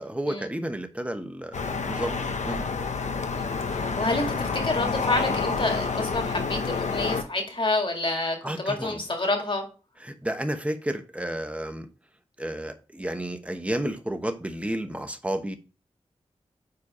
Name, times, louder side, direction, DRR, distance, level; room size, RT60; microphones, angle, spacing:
voice 1, 0.0-2.6 8.4-9.0 10.0-11.9 12.4-15.6, right 1 dB, 10° right, 1.0 m, -31 dB
sound 1, 1.5-7.2, left 4 dB, 75° left, 0.8 m, -28 dB
voice 2, 3.4-9.7, left 2 dB, 45° left, 2.0 m, -28 dB
4.9 x 4.5 x 4.9 m
cardioid pair, 40°, 12 cm